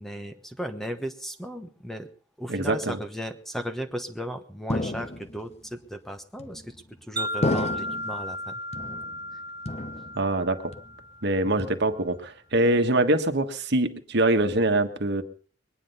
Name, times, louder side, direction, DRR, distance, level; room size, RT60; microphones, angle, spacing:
voice 1, 0.0-2.1 2.4-6.7 7.0-8.6 9.3-9.4 11.4-11.7, equal, ahead, 7 dB, 1.1 m, -36 dB
voice 2, 2.5-3.0 10.2-10.7 11.2-15.2, right 2 dB, 60° right, 7 dB, 1.5 m, -24 dB
sound 1, 4.7-5.5 6.4-6.9 7.4-8.2 8.7-9.3 9.6-10.4 10.7-11.2 11.6-12.2, left 2 dB, 35° left, 0.9 m, -32 dB
Wind chime, 7.2-11.4, equal, 25° right, 1.4 m, -35 dB
22.5 x 10.0 x 5.5 m, 0.42 s
head